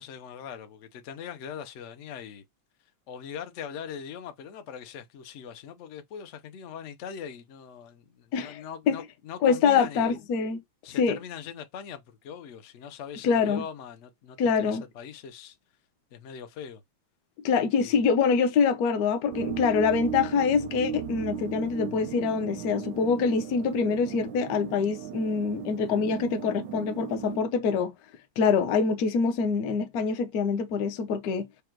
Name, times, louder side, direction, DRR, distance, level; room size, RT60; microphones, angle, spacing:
voice 1, 0.0-2.4 3.1-10.2 10.8-15.6 16.1-16.8 17.8-18.0, left 7 dB, 80° left, 0.6 m, -41 dB
voice 2, 8.3-9.0 9.4-10.6 11.0-11.2 13.2-13.6 14.4-14.8 17.4-27.9 28.4-31.5, left 5 dB, 65° left, 1.0 m, -25 dB
sound 1, 19.3-27.4, right 8 dB, 75° right, 1.1 m, -37 dB
5.1 x 2.2 x 4.5 m
omnidirectional pair, 2.2 m